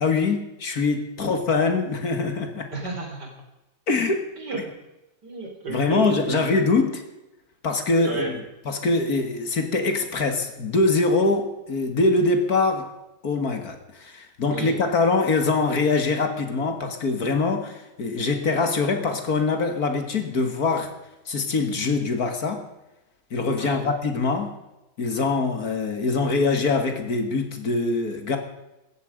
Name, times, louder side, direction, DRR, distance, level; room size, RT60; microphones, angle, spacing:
voice 1, 0.0-2.7 3.9-4.3 5.7-7.0 7.6-8.4 8.7-12.9 13.2-20.9 21.3-22.6 23.3-24.5 25.0-28.4, left 3 dB, 55° left, 7 dB, 2.3 m, -23 dB
voice 2, 2.7-3.3 4.4-4.7 5.2-6.5 8.0-8.4 14.5-14.8 23.6-23.8, right 3 dB, 70° right, 2 dB, 4.2 m, -31 dB
17.0 x 14.0 x 5.1 m, 0.97 s
omnidirectional pair, 1.9 m